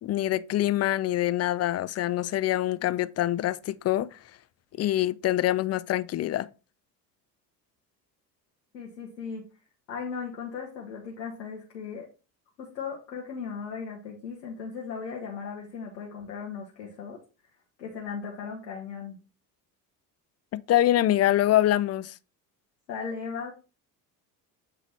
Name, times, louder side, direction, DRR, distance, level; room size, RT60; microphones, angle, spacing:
voice 1, 0.0-4.2 4.8-6.5 20.5-22.1, left 13 dB, 35° left, 0.4 m, -25 dB
voice 2, 8.7-9.4 9.9-12.1 12.6-17.2 17.8-19.2 22.9-23.5, left 6 dB, 85° left, 1.6 m, -37 dB
8.3 x 3.3 x 4.4 m
hypercardioid pair, 65°, 50 cm